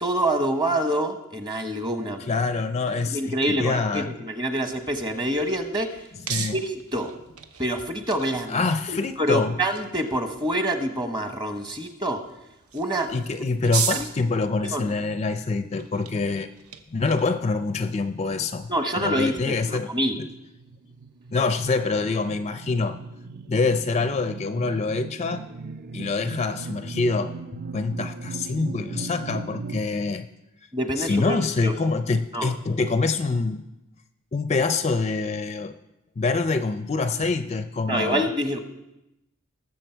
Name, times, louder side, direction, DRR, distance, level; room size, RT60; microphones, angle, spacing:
voice 1, 0.0-2.3 2.9-5.9 6.5-7.1 7.6-8.6 8.9-12.2 12.7-13.1 13.9-14.1 14.7-14.9 18.7-20.1 30.7-31.8 32.3-32.5 37.9-38.6, right 1 dB, 20° right, 6 dB, 1.1 m, -26 dB
voice 2, 2.3-4.1 6.3-6.6 8.5-9.6 13.1-16.5 16.9-18.7 19.0-19.9 20.2-20.3 21.3-23.0 23.5-25.5 25.9-30.3 31.0-33.6 34.3-35.8 36.2-38.3, left 3 dB, 30° left, 10 dB, 0.4 m, -25 dB
sound 1, 4.9-19.4, right 7 dB, 75° right, 0.8 m, -38 dB
sound 2, 20.3-29.8, right 4 dB, 45° right, 0.5 m, -38 dB
19.0 x 7.3 x 4.5 m, 0.91 s
head